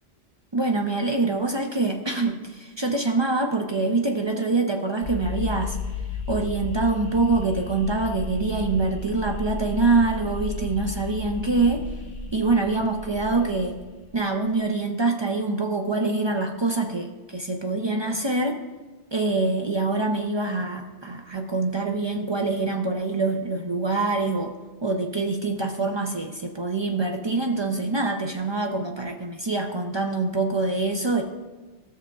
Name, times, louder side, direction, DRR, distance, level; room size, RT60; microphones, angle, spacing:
voice 1, 0.5-5.8 6.3-11.8 12.3-13.8 14.1-18.6 19.1-24.5 24.8-31.2, right 3 dB, 40° right, 3 dB, 0.4 m, -25 dB
sound 1, 5.0-14.3, left 4 dB, 75° left, 1.4 m, -34 dB
14.0 x 7.1 x 2.3 m, 1.2 s
omnidirectional pair, 1.1 m